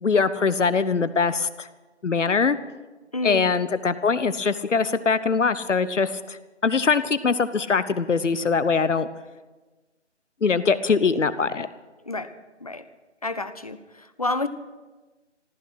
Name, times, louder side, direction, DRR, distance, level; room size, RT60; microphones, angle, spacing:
voice 1, 0.0-1.7 2.0-2.6 3.2-9.1 10.4-11.7, left 5 dB, 85° left, 14 dB, 0.9 m, -22 dB
voice 2, 3.1-3.5 12.0-12.3 12.6-12.8 13.2-14.5, left 2 dB, 30° left, 12 dB, 0.6 m, -29 dB
15.0 x 14.0 x 6.3 m, 1.2 s
figure-of-eight pair, 160°, 36 cm